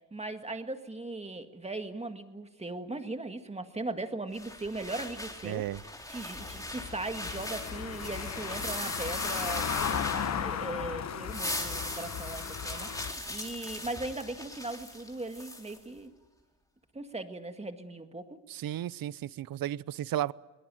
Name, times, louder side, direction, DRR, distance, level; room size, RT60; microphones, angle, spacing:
voice 1, 0.0-16.1 16.9-18.4, right 2 dB, 15° right, 1.9 m, -39 dB
sound 1, 4.3-10.7 11.1-15.8, left 1 dB, 10° left, 3.5 m, -39 dB
voice 2, 5.4-5.8 18.5-20.3, right 12 dB, 55° right, 0.7 m, -34 dB
Car passing by / Engine, 6.4-13.1, left 8 dB, 40° left, 1.0 m, -36 dB
21.5 x 20.5 x 9.1 m
cardioid pair, 105°, 43 cm